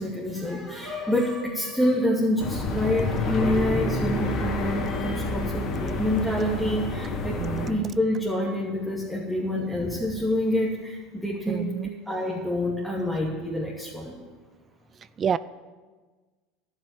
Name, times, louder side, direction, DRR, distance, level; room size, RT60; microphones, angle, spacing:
voice 1, 0.0-7.4 7.7-11.7 12.1-14.1, left 1 dB, ahead, -5 dB, 2.7 m, -27 dB
sound 1, 2.4-7.7, left 3 dB, 45° left, 2.3 m, -28 dB
voice 2, 7.4-7.9 11.5-11.9 15.2-15.4, right 8 dB, 35° right, 17 dB, 0.4 m, -28 dB
12.0 x 7.3 x 9.6 m, 1.4 s
hypercardioid pair, 75°, 0 cm